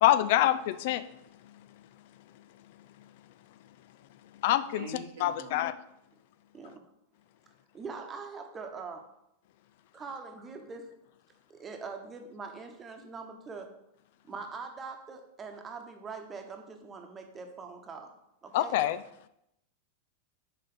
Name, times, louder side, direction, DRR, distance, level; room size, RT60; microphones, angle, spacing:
voice 1, 0.0-1.0 4.4-4.9 5.2-5.7 18.5-19.0, left 13 dB, 50° left, 14 dB, 0.4 m, -25 dB
voice 2, 4.7-5.7, right 2 dB, 65° right, -2 dB, 0.9 m, -44 dB
voice 3, 7.7-9.1 9.9-10.9 11.5-13.7 14.2-18.1 18.4-18.8, right 4 dB, 20° right, 4 dB, 1.1 m, -43 dB
5.7 x 4.8 x 5.1 m, 0.81 s
figure-of-eight pair, 90°, 0 cm